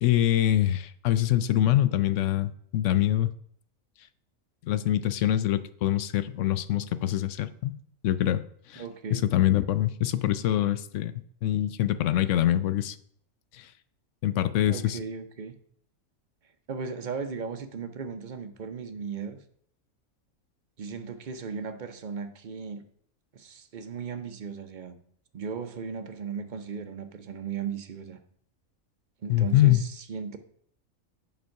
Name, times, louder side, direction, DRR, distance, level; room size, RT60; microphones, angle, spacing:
voice 1, 0.0-3.3 4.7-7.7 8.0-8.4 8.7-8.8 9.1-11.1 11.4-13.0 13.5-13.7 14.2-15.0 29.3-29.8, left 13 dB, 70° left, 0.9 m, -24 dB
voice 2, 8.8-9.2 14.7-15.5 16.7-19.4 20.8-22.8 23.3-25.0 25.3-28.2 29.2-30.4, right 6 dB, 45° right, 0.7 m, -36 dB
7.9 x 5.3 x 5.7 m
omnidirectional pair, 1.4 m